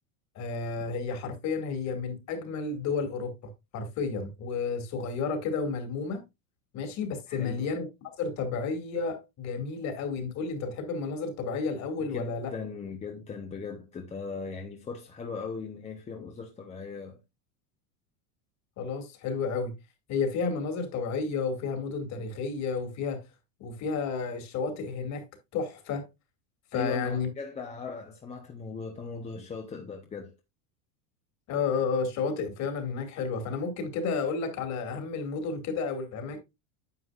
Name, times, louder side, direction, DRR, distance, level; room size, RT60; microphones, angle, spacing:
voice 1, 0.4-3.3 3.7-6.2 6.7-7.9 8.2-12.5 18.8-19.7 20.1-23.2 23.6-25.2 25.5-26.1 26.7-27.3 31.5-36.4, left 5 dB, 40° left, 2.4 m, -31 dB
voice 2, 7.3-7.7 12.1-17.2 26.7-30.3, left 5 dB, 15° left, 0.8 m, -38 dB
9.6 x 7.8 x 2.5 m
supercardioid pair, 160°, 44 cm